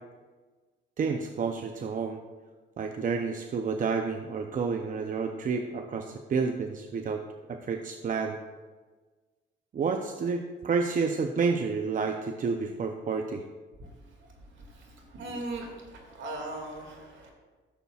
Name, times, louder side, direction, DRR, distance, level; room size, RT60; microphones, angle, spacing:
voice 1, 1.0-2.2 2.8-7.2 7.5-8.4 9.7-13.4, right 5 dB, 45° right, 5 dB, 0.6 m, -30 dB
voice 2, 15.1-17.3, right 2 dB, 70° right, 1 dB, 2.2 m, -38 dB
13.5 x 6.9 x 2.4 m, 1.4 s
cardioid pair, 90°, 20 cm